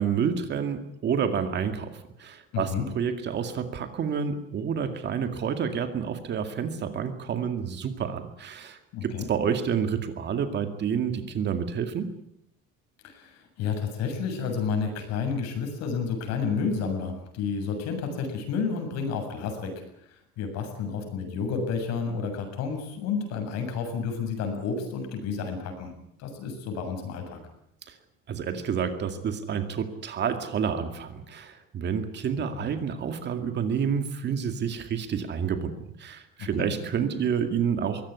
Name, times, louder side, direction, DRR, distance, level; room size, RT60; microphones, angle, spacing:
voice 1, 0.0-12.1 27.9-28.0 28.3-38.1, right 7 dB, 35° right, 8 dB, 2.2 m, -29 dB
voice 2, 2.5-2.9 8.9-9.3 13.0-19.7 20.1-25.9 26.2-27.4 32.5-32.7 36.4-36.7, left 5 dB, 60° left, 5 dB, 7.4 m, -31 dB
22.5 x 17.5 x 9.5 m, 0.78 s
cardioid pair, 160°, 29 cm